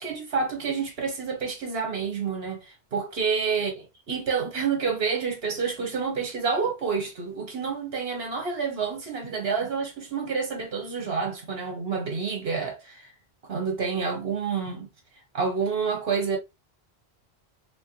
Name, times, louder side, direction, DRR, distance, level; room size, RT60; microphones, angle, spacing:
voice 1, 0.0-13.1 13.5-14.9 15.3-16.4, right 5 dB, 70° right, 1.3 m, -28 dB
3.2 x 2.1 x 3.0 m
omnidirectional pair, 1.1 m